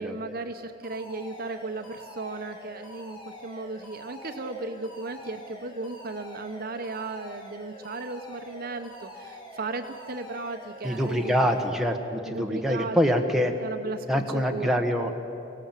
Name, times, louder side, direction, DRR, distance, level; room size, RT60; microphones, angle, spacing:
voice 1, 0.0-11.4 12.3-13.0 13.6-14.1 14.3-14.8, right 3 dB, 50° right, 7 dB, 0.9 m, -36 dB
Alarm, 0.8-11.7, equal, 25° left, 3.4 m, -45 dB
voice 2, 10.8-13.5 14.1-15.1, equal, ahead, 2 dB, 1.3 m, -25 dB
24.0 x 17.5 x 7.5 m, 2.8 s
head